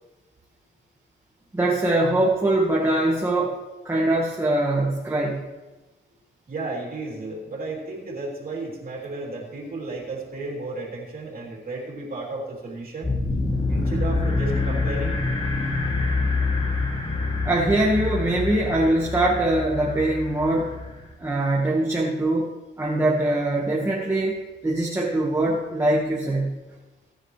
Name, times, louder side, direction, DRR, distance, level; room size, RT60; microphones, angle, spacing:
voice 1, 1.5-3.6 3.8-5.4 17.4-20.7 21.2-22.5 22.8-26.6, right 1 dB, 15° right, -3 dB, 1.6 m, -22 dB
voice 2, 6.5-13.1 13.7-15.2, right 2 dB, 45° right, -3 dB, 3.3 m, -33 dB
sound 1, 13.0-21.1, left 3 dB, 25° left, 2.6 m, -26 dB
18.5 x 9.5 x 3.3 m, 1.1 s
cardioid pair, 115°, 20 cm